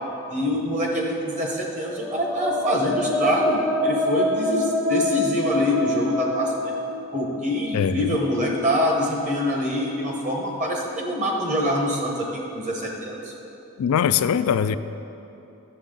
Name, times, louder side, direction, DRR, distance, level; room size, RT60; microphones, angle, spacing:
voice 1, 0.3-6.7 7.1-13.3, left 1 dB, 35° right, -1 dB, 1.2 m, -25 dB
sound 1, 2.0-7.8, left 1 dB, ahead, 0.6 m, -26 dB
voice 2, 7.7-8.2 13.8-14.8, left 8 dB, 90° left, 13 dB, 0.3 m, -21 dB
10.0 x 7.1 x 3.8 m, 2.9 s
head